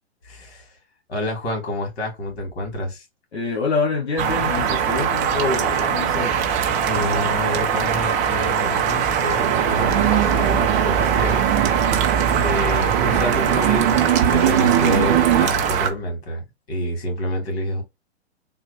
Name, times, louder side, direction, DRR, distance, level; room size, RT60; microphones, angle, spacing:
voice 1, 0.2-0.7 1.1-3.0 6.9-11.4 12.4-17.8, left 1 dB, 65° left, 2.5 m, -28 dB
voice 2, 3.3-6.3, left 4 dB, 85° left, 1.4 m, -25 dB
sound 1, 4.2-15.9, right 7 dB, 20° right, 0.6 m, -22 dB
sound 2, 9.4-15.5, right 10 dB, 55° right, 0.9 m, -21 dB
3.8 x 2.4 x 3.3 m
hypercardioid pair, 125°, 32 cm